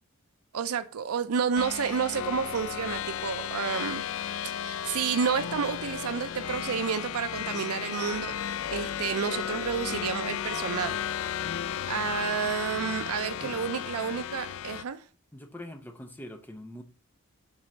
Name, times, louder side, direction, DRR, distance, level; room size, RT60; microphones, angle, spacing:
voice 1, 0.5-4.0 4.6-8.4 8.7-11.0 11.9-15.0, right 6 dB, 80° right, 0.5 m, -30 dB
sound 1, 1.6-14.8, left 9 dB, 65° left, 0.3 m, -34 dB
voice 2, 15.3-16.8, left 1 dB, 10° left, 0.7 m, -43 dB
7.4 x 4.1 x 6.3 m
head